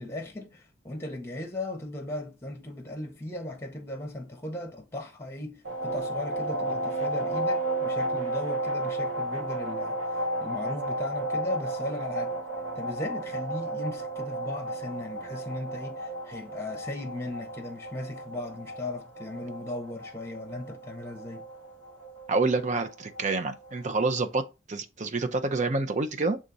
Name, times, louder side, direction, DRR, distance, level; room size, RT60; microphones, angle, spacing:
voice 1, 0.0-10.0 10.4-12.4 12.7-21.4, left 1 dB, 15° left, 1.4 m, -37 dB
sound 1, 5.6-24.2, right 1 dB, 80° right, 2.1 m, -33 dB
voice 2, 22.3-26.4, right 3 dB, 40° right, 0.6 m, -28 dB
6.6 x 3.7 x 4.0 m
head